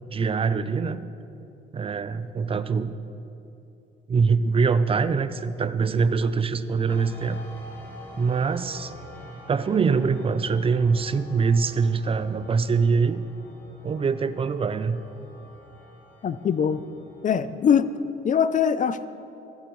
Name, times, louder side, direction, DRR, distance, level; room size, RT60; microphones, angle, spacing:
voice 1, 0.1-1.1 1.7-2.9 4.1-7.4 8.2-8.9 9.5-13.2 13.8-15.0, right 5 dB, 30° right, 13 dB, 0.4 m, -23 dB
sound 1, 6.9-18.1, left 1 dB, 10° left, 1.6 m, -46 dB
voice 2, 16.2-16.8 17.2-17.9 18.2-19.1, left 7 dB, 40° left, 14 dB, 0.4 m, -22 dB
15.0 x 8.1 x 3.1 m, 2.8 s
cardioid pair, 90°, 20 cm